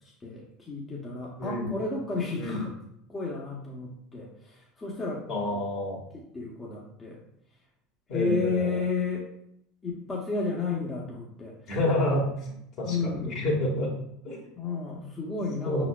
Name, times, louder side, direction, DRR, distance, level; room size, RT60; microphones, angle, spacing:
voice 1, 0.0-2.7 3.1-5.6 6.1-7.2 8.1-9.3 9.8-11.6 12.9-13.5 14.6-15.9, left 4 dB, 20° left, -3 dB, 1.0 m, -32 dB
voice 2, 2.4-2.7 5.3-6.0 8.1-8.8 11.7-13.9 14.2-14.4 15.6-15.9, left 1 dB, 50° left, -2 dB, 1.8 m, -29 dB
5.5 x 4.0 x 2.3 m, 0.74 s
hypercardioid pair, 80°, 0 cm